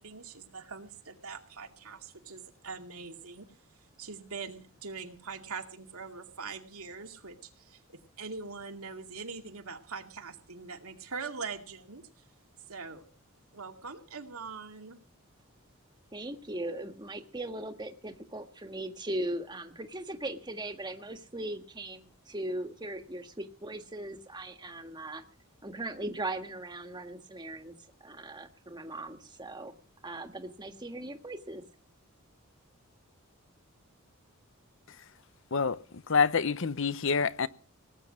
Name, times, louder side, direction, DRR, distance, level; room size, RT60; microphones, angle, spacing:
voice 1, 0.0-12.3 12.7-13.0 13.5-15.0, right 4 dB, 90° right, 2.3 m, -43 dB
voice 2, 16.1-25.2 25.6-27.8 28.0-29.7 30.0-31.6, right 1 dB, 20° right, 1.7 m, -39 dB
voice 3, 35.5-37.5, left 5 dB, 60° left, 0.8 m, -27 dB
18.5 x 9.5 x 6.2 m
head